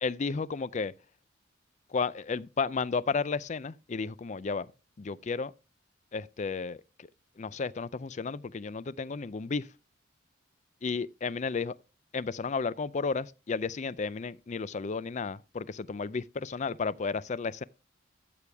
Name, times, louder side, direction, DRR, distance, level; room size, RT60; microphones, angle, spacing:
voice 1, 0.0-0.9 1.9-4.7 5.0-5.5 6.1-7.1 7.4-9.7 10.8-11.8 12.1-17.6, left 4 dB, 35° left, 0.4 m, -33 dB
13.0 x 6.9 x 3.4 m
head